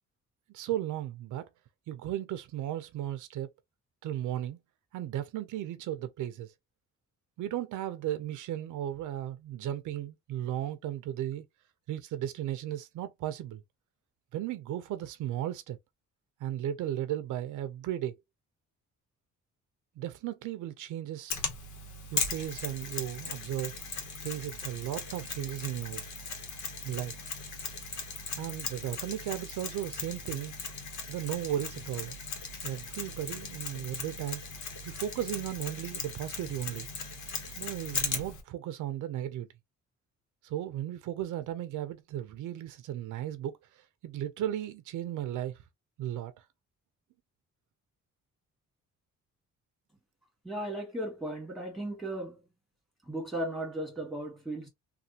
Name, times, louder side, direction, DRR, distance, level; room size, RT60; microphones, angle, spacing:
voice 1, 0.5-1.5 1.9-3.5 4.0-4.6 4.9-6.5 7.4-11.4 11.9-13.6 14.3-15.8 16.4-18.1 20.0-21.4 22.1-23.7 24.2-26.0 26.8-27.1 28.4-30.5 31.1-32.2 32.6-34.4 34.8-36.9 37.6-39.5 40.4-45.6 46.0-46.4, right 12 dB, 80° right, 0.6 m, -35 dB
Mechanisms, 21.3-38.4, left 4 dB, 75° left, 1.1 m, -38 dB
voice 2, 50.4-52.4 53.1-54.7, right 1 dB, ahead, 1.9 m, -36 dB
3.3 x 2.3 x 2.7 m
cardioid pair, 90°, 30 cm